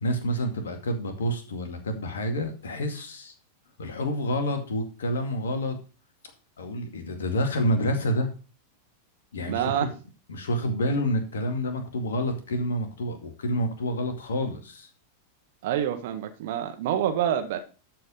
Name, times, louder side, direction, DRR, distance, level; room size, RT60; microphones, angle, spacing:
voice 1, 0.0-3.3 3.8-5.8 6.6-8.3 9.3-9.8 10.3-14.9, equal, 65° left, 6 dB, 2.2 m, -28 dB
voice 2, 9.5-9.9 15.6-17.6, right 10 dB, 55° right, 7 dB, 1.3 m, -27 dB
13.0 x 4.7 x 5.6 m, 0.35 s
figure-of-eight pair, 90°, 0 cm